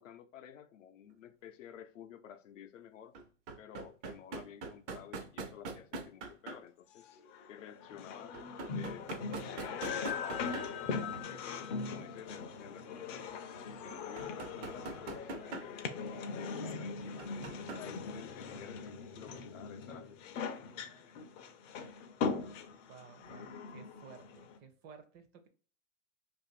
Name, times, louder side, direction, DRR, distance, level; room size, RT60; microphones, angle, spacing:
voice 1, 0.0-3.2 3.6-7.2 7.5-8.4 8.7-13.4 13.8-15.9 16.3-18.9 19.1-21.2, left 9 dB, 85° left, 0.5 m, -52 dB
sound 1, 1.1-1.2 3.1-6.6 8.3-10.8 11.1-11.2 13.9-15.8 17.2-17.8 18.4-18.5, right 3 dB, 65° right, 0.7 m, -42 dB
sound 2, 7.0-24.6, left 5 dB, 30° left, 0.4 m, -41 dB
sound 3, 8.9-19.8, right 5 dB, 85° right, 1.0 m, -60 dB
voice 2, 22.9-25.5, right 6 dB, 30° right, 0.5 m, -55 dB
2.5 x 2.5 x 4.0 m
hypercardioid pair, 110°, 37 cm